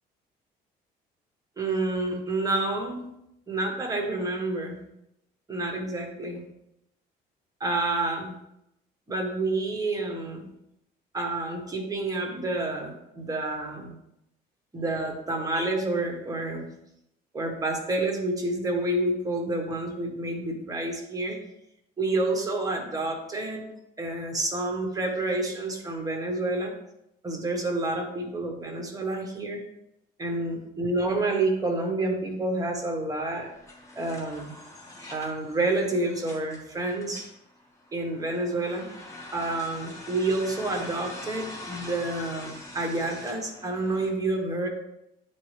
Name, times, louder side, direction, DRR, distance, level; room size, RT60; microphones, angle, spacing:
voice 1, 1.6-3.1 3.5-4.8 5.5-6.4 7.6-8.3 9.1-10.5 11.1-14.0 14.7-16.6 17.3-21.4 22.0-23.7 24.0-26.7 27.2-29.6 30.2-33.5 33.9-34.5 35.1-37.2 37.9-38.9 39.3-44.7, right 2 dB, 20° right, 2 dB, 1.3 m, -29 dB
sound 1, 33.3-44.1, left 2 dB, 20° left, 1.5 m, -44 dB
9.4 x 4.1 x 3.3 m, 0.81 s
cardioid pair, 110°, 17 cm